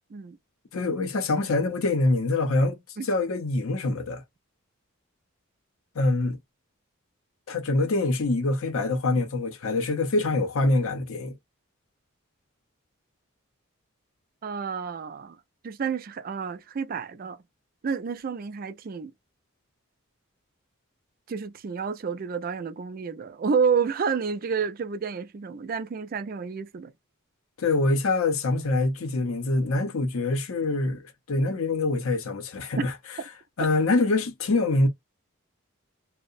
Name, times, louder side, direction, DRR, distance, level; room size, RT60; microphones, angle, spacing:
voice 1, 0.7-4.2 5.9-6.4 7.5-11.3 27.6-31.0 31.3-32.9 33.6-34.9, left 2 dB, 85° left, 0.6 m, -25 dB
voice 2, 14.4-15.4 15.6-17.4 17.8-19.1 21.3-26.9, right 6 dB, 45° right, 0.3 m, -29 dB
2.7 x 2.1 x 2.5 m
head